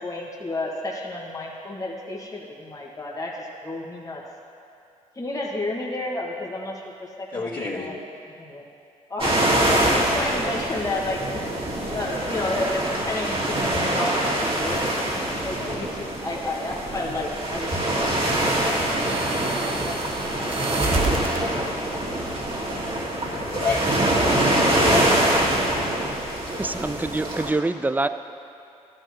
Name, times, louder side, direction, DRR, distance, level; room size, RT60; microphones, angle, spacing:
voice 1, 0.0-4.2 5.1-8.0 8.4-8.6 9.1-9.4 9.7-11.4 11.9-14.8 15.1-19.1, left 2 dB, 25° left, -3 dB, 1.6 m, -31 dB
voice 2, 7.3-7.9 23.2-25.3, left 3 dB, 75° left, -11 dB, 2.0 m, -30 dB
sound 1, 9.2-27.5, right 1 dB, 40° right, 1.9 m, -24 dB
sound 2, 18.2-21.5 22.3-22.9, right 6 dB, 80° right, 0.7 m, -37 dB
voice 3, 26.6-28.1, right 2 dB, 10° right, 12 dB, 0.4 m, -25 dB
13.5 x 10.0 x 2.9 m, 2.5 s
supercardioid pair, 55°, 15 cm